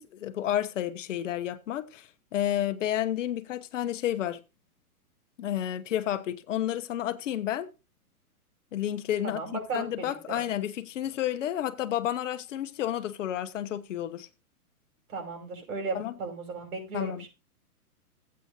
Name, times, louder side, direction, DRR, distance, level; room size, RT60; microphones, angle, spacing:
voice 1, 0.0-4.4 5.4-7.7 8.7-14.3 15.9-16.1 16.9-17.3, left 11 dB, 55° left, 0.9 m, -31 dB
voice 2, 9.2-10.4 15.1-17.3, right 4 dB, 65° right, 5.6 m, -36 dB
14.5 x 8.5 x 2.7 m
hypercardioid pair, 145°, 46 cm